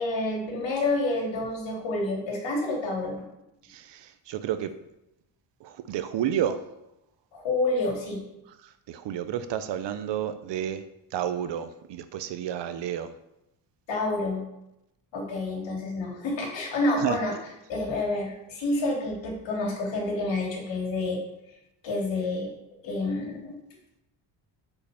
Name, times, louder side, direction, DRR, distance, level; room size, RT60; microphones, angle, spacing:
voice 1, 0.0-3.2 7.3-8.2 13.9-14.5 15.1-17.3 17.7-21.2 21.8-22.5 22.8-23.5, left 2 dB, 70° left, -1 dB, 3.0 m, -28 dB
voice 2, 3.7-4.7 5.6-6.6 8.6-10.8 11.1-13.1 17.0-17.2, right 10 dB, 65° right, 11 dB, 0.7 m, -31 dB
8.5 x 5.5 x 6.9 m, 0.88 s
cardioid pair, 175°, 47 cm